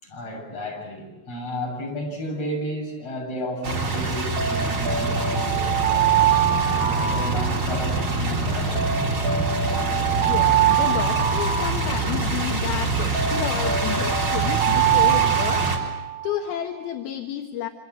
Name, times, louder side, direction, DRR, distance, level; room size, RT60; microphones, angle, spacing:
voice 1, 0.0-6.2 6.7-9.3, equal, 40° left, 0 dB, 8.5 m, -33 dB
sound 1, 3.6-15.8, right 3 dB, 35° right, 4.5 m, -25 dB
Alarm, 4.4-8.1 8.8-12.5 13.1-16.4, right 10 dB, 55° right, 2.8 m, -24 dB
voice 2, 10.2-17.7, left 10 dB, 75° left, 4 dB, 3.2 m, -31 dB
28.0 x 26.5 x 7.7 m, 1.1 s
omnidirectional pair, 4.5 m